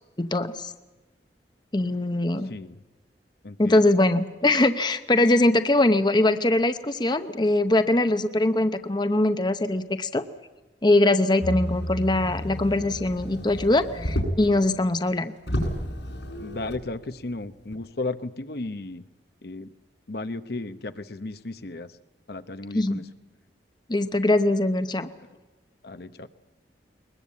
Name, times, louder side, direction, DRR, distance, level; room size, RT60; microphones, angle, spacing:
voice 1, 0.2-0.7 1.7-2.5 3.6-10.2 10.8-15.3 22.7-23.0 23.9-25.1, left 2 dB, 25° left, 10 dB, 0.8 m, -22 dB
voice 2, 2.5-2.8 3.4-3.9 16.4-19.0 19.4-19.7 20.1-21.9 22.3-23.0 25.8-26.3, left 2 dB, 60° left, 11 dB, 0.9 m, -34 dB
Motor vehicle (road), 11.4-14.6 15.0-15.1 15.4-16.9 17.7-17.8, equal, 80° left, 7.3 m, -31 dB
21.5 x 21.0 x 8.4 m, 1.2 s
head